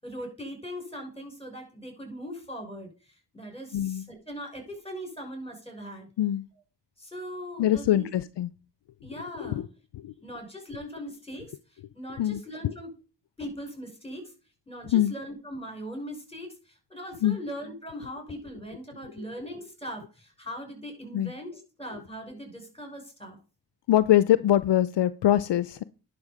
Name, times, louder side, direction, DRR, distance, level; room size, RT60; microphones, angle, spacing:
voice 1, 0.0-6.1 7.0-8.1 9.0-9.6 10.2-12.9 13.4-14.3 14.7-23.4, equal, 15° left, 5.7 m, -40 dB
voice 2, 3.7-4.0 6.2-6.4 7.6-8.5 9.4-9.7 9.9-10.1 12.2-12.7 14.9-15.1 17.2-17.4 21.1-21.3 23.9-25.8, left 12 dB, 70° left, 0.6 m, -23 dB
10.5 x 6.4 x 5.1 m
cardioid pair, 45°, 44 cm